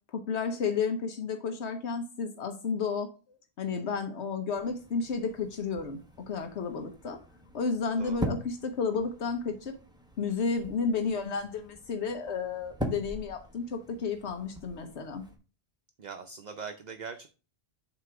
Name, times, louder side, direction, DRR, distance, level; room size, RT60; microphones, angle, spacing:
voice 1, 0.1-7.2 7.5-9.7 10.2-15.3, left 5 dB, 80° left, 6 dB, 1.2 m, -32 dB
voice 2, 3.7-4.0 8.0-8.3 16.0-17.3, right 5 dB, 50° right, 7 dB, 0.6 m, -42 dB
sound 1, 4.5-15.4, equal, 5° right, 0.9 m, -42 dB
7.8 x 3.0 x 5.9 m, 0.34 s
omnidirectional pair, 1.1 m